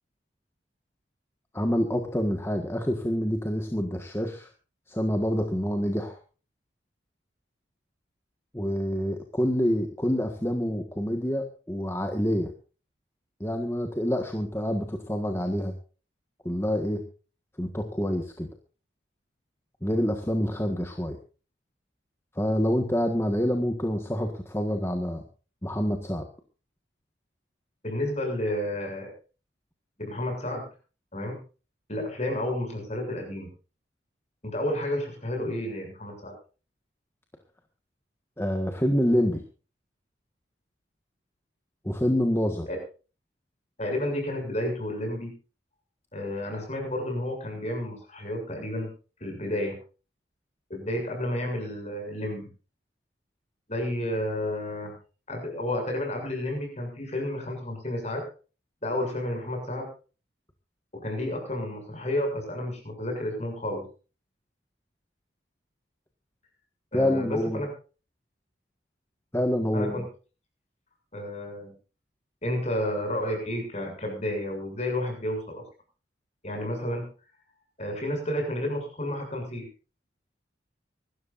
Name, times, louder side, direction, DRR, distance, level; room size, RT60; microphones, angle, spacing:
voice 1, 1.5-4.5 4.9-6.2 8.5-12.5 13.4-15.7 16.4-17.0 17.6-18.5 19.8-21.2 22.3-25.2 25.6-26.3 38.4-39.4 41.8-42.7 66.9-67.6 69.3-69.9, equal, 15° left, 4 dB, 1.6 m, -27 dB
voice 2, 27.8-29.1 30.0-30.6 31.1-31.4 31.9-33.5 34.4-36.3 42.7-42.8 43.8-45.3 46.1-48.9 49.2-49.8 50.7-52.4 53.7-55.0 55.3-58.2 58.8-59.9 60.9-63.8 66.9-67.7 69.7-70.0 71.1-71.7 72.4-75.6 76.4-77.0 77.8-79.7, left 1 dB, 35° left, 3 dB, 7.2 m, -31 dB
25.5 x 13.0 x 2.6 m, 0.36 s
head